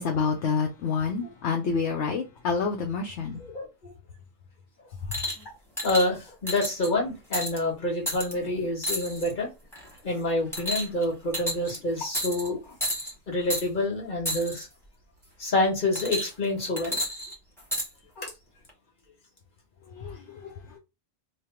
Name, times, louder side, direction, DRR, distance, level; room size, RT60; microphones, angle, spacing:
voice 1, 0.0-3.4 19.9-20.8, left 5 dB, 65° left, 0.9 m, -28 dB
voice 2, 3.5-3.9 5.8-9.5 10.0-12.6 13.3-14.7 15.4-17.0 18.2-18.3, left 1 dB, 40° left, 1.4 m, -27 dB
sound 1, 5.1-5.4 5.8-6.1 6.5-6.9 7.3-7.6 8.1-8.3 8.8-9.3 9.7-10.0 10.5-11.0 11.3-11.8 12.1-12.5 12.8-13.1 13.5-13.6 14.2-14.6 15.9-16.4 16.8-17.9 18.7-18.8, equal, ahead, 1.2 m, -31 dB
3.3 x 2.3 x 4.3 m
omnidirectional pair, 1.3 m